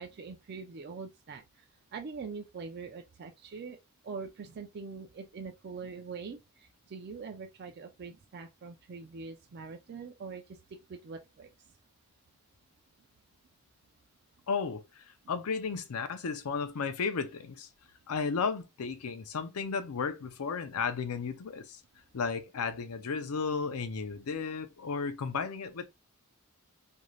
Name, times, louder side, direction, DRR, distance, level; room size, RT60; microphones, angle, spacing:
voice 1, 0.0-1.6 1.9-3.8 4.0-10.4 10.9-11.5, right 5 dB, 45° right, 0.4 m, -43 dB
voice 2, 14.5-17.7 18.1-21.8 22.1-25.9, left 5 dB, 80° left, 0.5 m, -34 dB
3.1 x 2.6 x 2.3 m
head